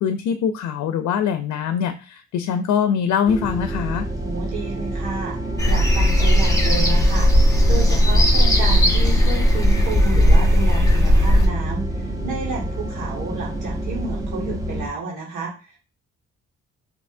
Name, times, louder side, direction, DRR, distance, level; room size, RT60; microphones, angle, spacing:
voice 1, 0.0-4.1, left 7 dB, 70° left, 9 dB, 0.5 m, -23 dB
sound 1, 3.3-14.9, right 1 dB, 10° right, 0.8 m, -28 dB
voice 2, 4.2-5.4 5.6-15.8, right 4 dB, 90° right, -3 dB, 1.8 m, -31 dB
sound 2, 5.6-11.5, equal, 10° left, 1.1 m, -16 dB
5.5 x 2.9 x 2.6 m, 0.33 s
cardioid pair, 90°, 30 cm